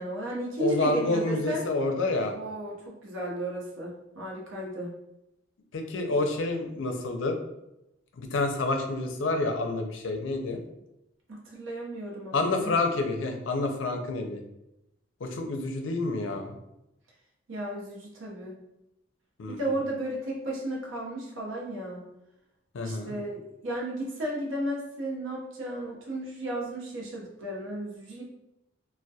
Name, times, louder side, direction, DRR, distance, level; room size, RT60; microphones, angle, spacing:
voice 1, 0.0-1.7 2.3-4.9 11.3-12.7 17.5-18.5 19.5-22.0 22.8-28.2, right 1 dB, 90° right, -2 dB, 0.6 m, -34 dB
voice 2, 0.6-2.3 5.7-7.4 8.2-10.6 12.3-14.4 15.2-16.6 19.4-19.8 22.7-23.1, left 2 dB, 75° left, 4 dB, 0.4 m, -28 dB
2.2 x 2.1 x 2.7 m, 0.87 s
head